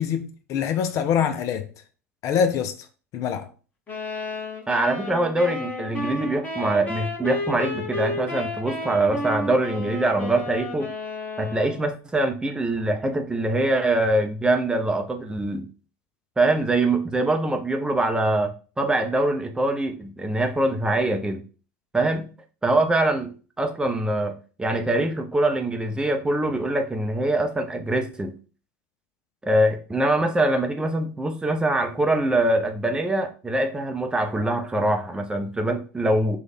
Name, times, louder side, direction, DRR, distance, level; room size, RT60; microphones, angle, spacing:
voice 1, 0.0-1.7 2.2-2.8 3.1-3.5, left 7 dB, 40° left, 0.4 m, -24 dB
sound 1, 3.9-11.9, left 2 dB, 20° left, 1.2 m, -32 dB
voice 2, 4.7-10.9 11.4-15.7 16.4-21.4 21.9-22.3 22.6-28.3 29.4-36.4, right 1 dB, 10° right, 0.6 m, -23 dB
3.2 x 2.3 x 4.1 m
figure-of-eight pair, 75°, 8 cm